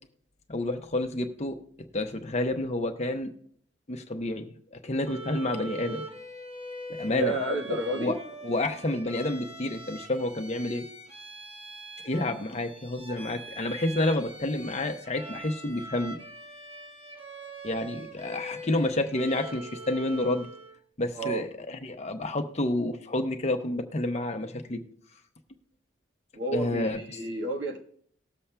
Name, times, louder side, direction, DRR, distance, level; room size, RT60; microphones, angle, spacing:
voice 1, 0.5-1.6 1.9-3.3 3.9-6.0 7.0-7.4 7.7-8.2 8.4-10.8 12.0-16.2 17.6-20.5 21.0-24.8 26.5-27.2, left 2 dB, 35° left, 6 dB, 0.8 m, -29 dB
Bowed string instrument, 5.0-20.8, right 2 dB, 30° right, 1.2 m, -43 dB
voice 2, 7.1-8.2 12.1-12.3 21.1-21.4 26.3-27.8, right 1 dB, 75° right, 2 dB, 1.4 m, -31 dB
19.0 x 7.1 x 2.2 m, 0.64 s
head